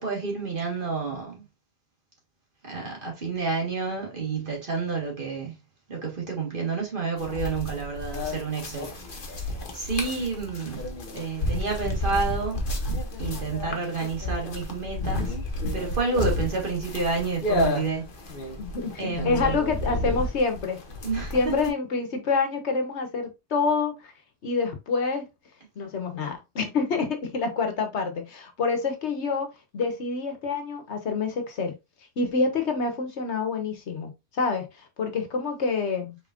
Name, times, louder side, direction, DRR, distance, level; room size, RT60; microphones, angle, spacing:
voice 1, 0.0-1.4 2.6-5.5 5.9-9.4 9.7-10.9 11.1-12.6 13.2-15.4 15.7-18.1 19.0-19.6 21.0-21.5, right 4 dB, 50° right, 2.0 m, -29 dB
sound 1, 7.2-21.7, left 1 dB, 50° left, 1.2 m, -31 dB
voice 2, 18.6-20.8 21.3-24.1 24.4-25.3 25.8-31.7 32.2-36.2, left 4 dB, 85° left, 1.4 m, -27 dB
5.1 x 4.0 x 2.5 m
omnidirectional pair, 1.1 m